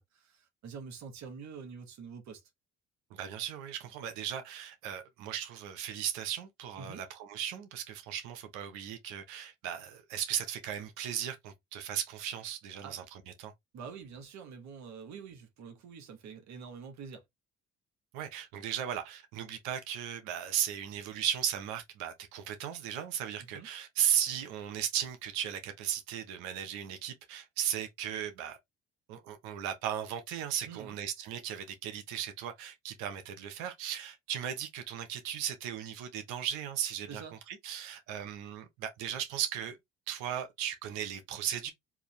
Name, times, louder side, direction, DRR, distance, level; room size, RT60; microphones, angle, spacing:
voice 1, 0.0-2.5 6.8-7.1 12.8-13.0 13.7-17.3 23.4-23.7 30.7-31.0 37.1-37.3, right 6 dB, 70° right, 1.3 m, -46 dB
voice 2, 3.1-13.0 13.4-13.5 18.1-28.6 29.1-37.2 37.5-39.8 40.1-41.7, right 10 dB, 85° right, 0.9 m, -36 dB
3.6 x 2.7 x 3.2 m
supercardioid pair, 65°, 29 cm